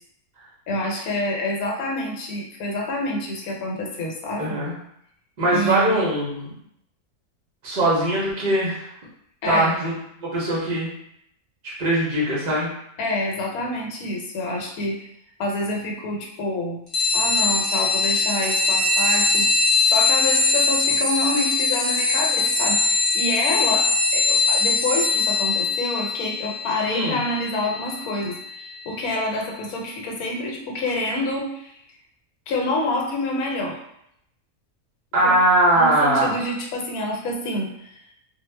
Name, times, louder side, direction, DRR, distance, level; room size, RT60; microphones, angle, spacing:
voice 1, 0.7-4.6 5.5-6.0 9.4-9.7 13.0-15.0 15.4-16.8 17.1-19.5 19.9-31.7 32.5-33.8 35.2-35.4 35.7-38.0, left 2 dB, 85° left, -1 dB, 1.1 m, -27 dB
voice 2, 4.4-4.8 5.4-6.6 7.6-8.9 9.5-9.9 10.2-10.9 11.6-12.7 26.9-27.2 35.1-36.4, right 1 dB, 55° right, -6 dB, 0.5 m, -21 dB
sound 1, 16.9-29.0, left 3 dB, 55° left, 0.3 m, -22 dB
2.4 x 2.0 x 3.1 m, 0.76 s
omnidirectional pair, 1.5 m